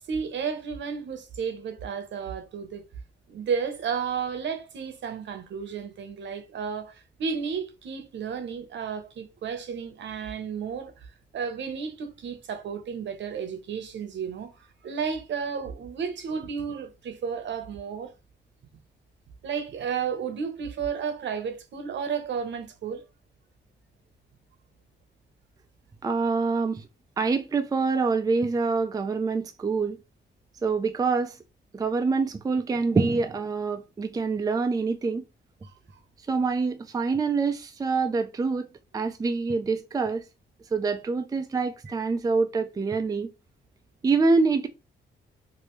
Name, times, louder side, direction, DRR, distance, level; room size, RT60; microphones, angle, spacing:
voice 1, 0.1-2.8 3.3-18.1 19.4-23.0 35.6-35.7 41.9-42.0, right 6 dB, 70° right, 0.8 m, -32 dB
voice 2, 26.0-26.8 27.2-30.0 30.6-31.4 31.7-35.2 36.3-38.7 38.9-40.2 40.7-43.3 44.0-44.7, right 4 dB, 20° right, 0.4 m, -25 dB
3.1 x 2.6 x 3.1 m
cardioid pair, 100°, 19 cm